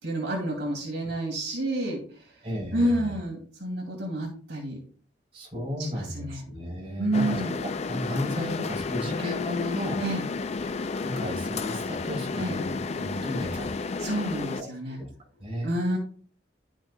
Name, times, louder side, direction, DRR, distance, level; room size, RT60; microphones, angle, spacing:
voice 1, 0.0-2.0 2.7-4.8 5.8-6.4 7.0-7.6 10.0-10.3 12.4-12.6 14.0-15.0 15.6-16.0, right 1 dB, 75° right, 0 dB, 2.5 m, -29 dB
voice 2, 2.4-3.1 5.3-10.0 11.0-13.7 14.6-15.1 15.4-15.7, left 1 dB, 35° right, -4 dB, 3.5 m, -34 dB
sound 1, 7.1-14.6, left 4 dB, 35° left, 0.4 m, -32 dB
11.5 x 6.2 x 2.2 m, 0.43 s
head